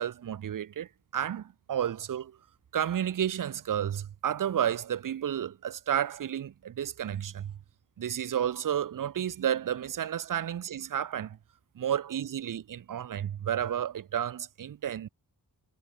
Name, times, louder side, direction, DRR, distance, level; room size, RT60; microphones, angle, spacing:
voice 1, 0.0-2.4 2.7-7.5 8.0-11.4 11.8-15.1, right 10 dB, 60° right, 0.5 m, -31 dB
cardioid pair, 50°, 38 cm